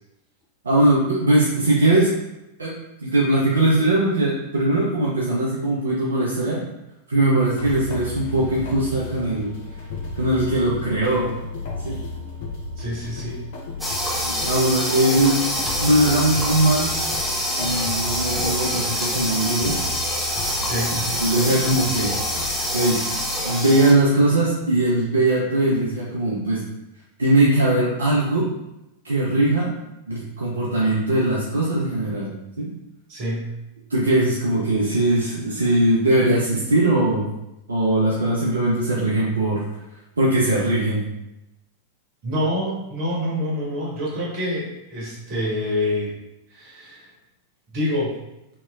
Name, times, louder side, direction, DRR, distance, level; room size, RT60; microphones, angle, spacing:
voice 1, 0.6-2.1 2.6-2.7 3.0-6.6 7.1-9.5 10.2-11.4 11.8-12.0 14.2-15.4 15.8-17.0 17.6-19.8 20.9-22.1 22.7-23.0 23.4-26.6 27.2-28.5 29.0-29.8 30.1-32.7 33.9-37.3 37.7-39.6 40.2-41.0, right 1 dB, 75° right, -5 dB, 0.5 m, -20 dB
sound 1, 7.5-23.5, left 3 dB, 55° left, 0.6 m, -34 dB
voice 2, 12.8-13.4 20.6-21.0 33.1-33.5 42.2-46.1 46.5-47.0 47.7-48.2, left 1 dB, 45° right, -4 dB, 1.2 m, -26 dB
sound 2, 13.8-23.9, equal, 5° left, 0.6 m, -26 dB
2.9 x 2.9 x 2.3 m, 0.91 s
figure-of-eight pair, 90°, 0 cm